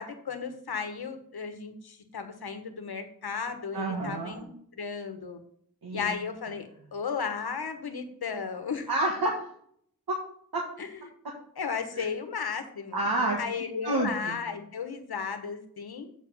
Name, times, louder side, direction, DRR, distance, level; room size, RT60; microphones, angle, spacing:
voice 1, 0.0-4.5 4.8-5.4 5.9-8.9 10.8-11.1 11.6-13.1 13.4-16.1, left 5 dB, 85° left, 7 dB, 1.3 m, -35 dB
voice 2, 3.7-4.3 5.8-6.1 8.9-9.4 10.1-10.2 10.5-10.6 12.9-13.4 13.8-14.4, right 2 dB, 70° right, -1 dB, 1.6 m, -28 dB
7.9 x 4.8 x 5.4 m, 0.64 s
wide cardioid pair, 75°, 37 cm